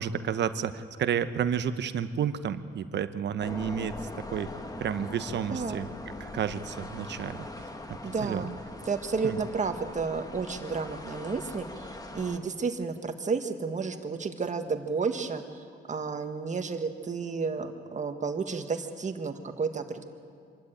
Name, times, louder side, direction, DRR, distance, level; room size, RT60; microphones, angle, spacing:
voice 1, 0.0-4.5 4.8-5.9 6.2-7.5 7.9-8.4 9.2-9.4, right 8 dB, 65° right, 11 dB, 1.0 m, -31 dB
sound 1, 3.4-12.4, left 2 dB, 20° left, 1.8 m, -41 dB
voice 2, 5.5-5.8 8.0-8.6 8.8-20.0, right 5 dB, 35° right, 6 dB, 1.7 m, -32 dB
25.0 x 13.0 x 9.1 m, 2.2 s
cardioid pair, 90°, 20 cm